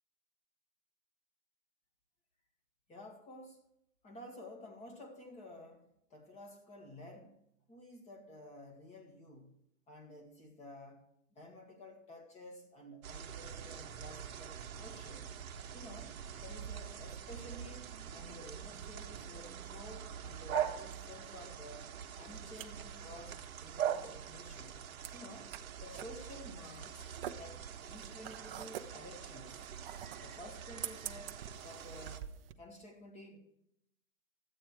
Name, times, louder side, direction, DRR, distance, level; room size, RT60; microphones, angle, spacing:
voice 1, 2.9-3.6 4.0-7.4 7.7-9.6 9.9-15.3 15.7-24.8 25.1-25.6 25.8-27.1 27.4-29.7 30.2-33.4, left 1 dB, 15° left, 4 dB, 1.8 m, -52 dB
sound 1, 13.0-32.2, right 8 dB, 80° right, 1.2 m, -43 dB
sound 2, 22.1-32.5, right 10 dB, 45° right, 0.7 m, -48 dB
12.5 x 8.6 x 4.6 m, 0.76 s
hypercardioid pair, 150°, 41 cm